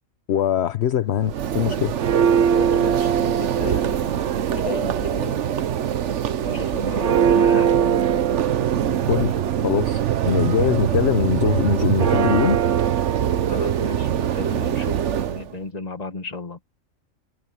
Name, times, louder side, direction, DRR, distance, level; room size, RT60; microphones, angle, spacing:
voice 1, 0.3-1.9 9.1-9.3 9.6-12.6, left 9 dB, 60° left, 0.9 m, -22 dB
Church bell, 1.2-15.4, right 9 dB, 60° right, 1.1 m, -21 dB
voice 2, 2.4-4.2 4.5-5.7 6.4-7.7 13.5-16.6, left 3 dB, 30° left, 1.8 m, -34 dB
omnidirectional pair, 1.4 m